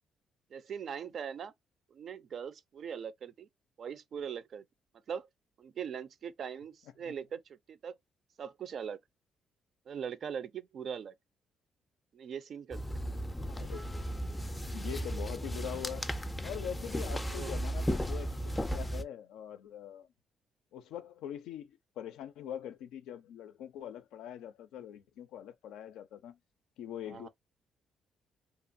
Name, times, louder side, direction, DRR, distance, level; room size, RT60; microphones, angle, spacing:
voice 1, 0.5-1.5 1.9-3.5 3.8-4.6 5.1-5.3 5.6-7.9 8.4-9.0 9.9-11.1 12.1-13.0 17.3-17.6 27.1-27.3, right 7 dB, 60° right, 0.4 m, -41 dB
sound 1, 12.7-19.0, equal, 15° left, 0.4 m, -35 dB
voice 2, 13.4-14.1 14.7-16.1 16.4-20.1 20.7-26.4 26.8-27.3, left 10 dB, 90° left, 0.4 m, -43 dB
2.9 x 2.2 x 2.4 m
cardioid pair, 90°, 0 cm